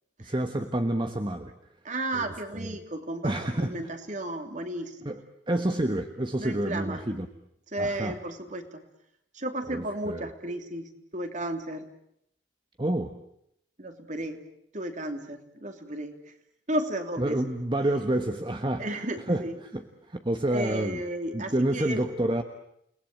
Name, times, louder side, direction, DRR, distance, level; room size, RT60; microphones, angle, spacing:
voice 1, 0.2-1.5 2.1-2.8 3.2-3.8 5.0-5.2 5.5-7.3 7.8-8.2 9.7-10.3 12.8-13.1 17.2-21.0 21.3-22.4, right 1 dB, 25° right, 6 dB, 1.3 m, -29 dB
voice 2, 1.8-5.1 6.4-7.0 7.7-8.8 9.3-11.9 13.8-14.4 14.7-16.2 16.7-17.4 18.8-19.5 20.5-22.0, right 1 dB, 40° right, 6 dB, 3.0 m, -33 dB
30.0 x 20.0 x 8.9 m, 0.75 s
head